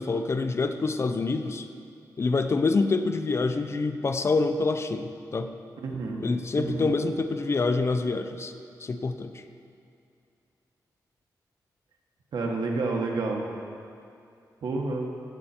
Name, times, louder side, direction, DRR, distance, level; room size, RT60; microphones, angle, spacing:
voice 1, 0.0-1.7 2.2-5.5 6.2-8.5 8.8-9.3, left 3 dB, 40° left, 8 dB, 0.7 m, -26 dB
voice 2, 5.8-6.3 6.6-6.9 12.3-13.4 14.6-15.1, right 3 dB, 80° right, 1 dB, 1.6 m, -29 dB
17.0 x 8.2 x 4.4 m, 2.5 s
wide cardioid pair, 110°, 7 cm